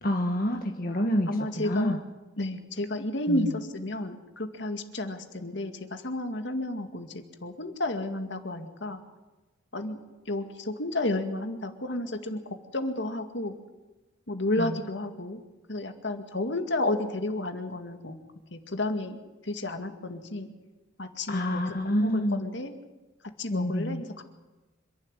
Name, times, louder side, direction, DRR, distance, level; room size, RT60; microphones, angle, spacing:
voice 1, 0.0-1.3 1.6-2.0 3.3-3.5 14.6-14.8 21.3-22.5 23.5-24.0, equal, 50° left, 3 dB, 1.6 m, -28 dB
voice 2, 1.3-2.0 2.4-9.0 9.7-10.0 10.3-12.4 12.7-13.6 14.3-15.4 15.7-18.2 18.5-20.5 21.0-22.7 23.4-24.2, left 1 dB, 65° left, 6 dB, 2.1 m, -32 dB
26.5 x 11.5 x 9.9 m, 1.1 s
head